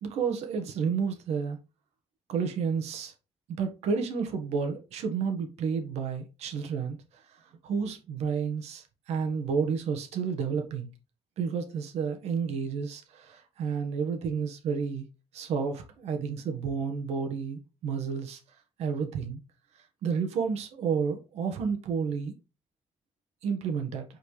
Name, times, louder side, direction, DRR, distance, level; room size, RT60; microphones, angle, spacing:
voice 1, 0.0-1.6 2.3-3.1 3.6-7.0 7.4-10.9 11.4-15.0 15.3-18.4 18.8-19.4 20.0-22.3 23.4-24.0, right 6 dB, 90° right, 1.5 m, -31 dB
8.4 x 4.4 x 3.3 m
cardioid pair, 125°, 11 cm